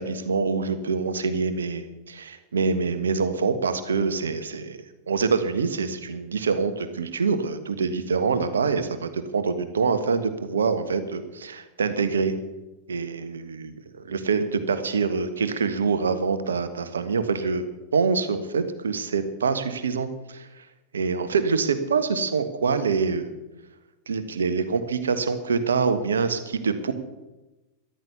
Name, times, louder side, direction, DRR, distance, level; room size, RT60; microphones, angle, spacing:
voice 1, 0.0-4.8 5.1-12.3 12.9-13.7 14.0-17.6 17.9-20.6 20.9-23.3 24.1-26.9, right 5 dB, 70° right, 10 dB, 1.4 m, -25 dB
14.0 x 12.0 x 6.8 m, 1.0 s
figure-of-eight pair, 90°, 0 cm